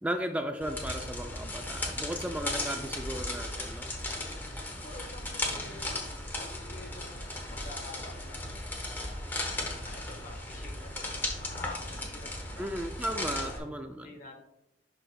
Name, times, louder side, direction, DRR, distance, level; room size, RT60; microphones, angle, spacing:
voice 1, 0.0-3.9 12.6-14.1, right 1 dB, 10° right, 5 dB, 0.3 m, -35 dB
sound 1, 0.6-13.6, left 1 dB, 10° left, 1.1 m, -36 dB
voice 2, 4.1-4.4 4.7-9.2 9.7-12.7 13.1-13.7 14.0-14.4, left 3 dB, 45° left, 3 dB, 1.3 m, -48 dB
10.5 x 4.8 x 2.3 m, 0.85 s
head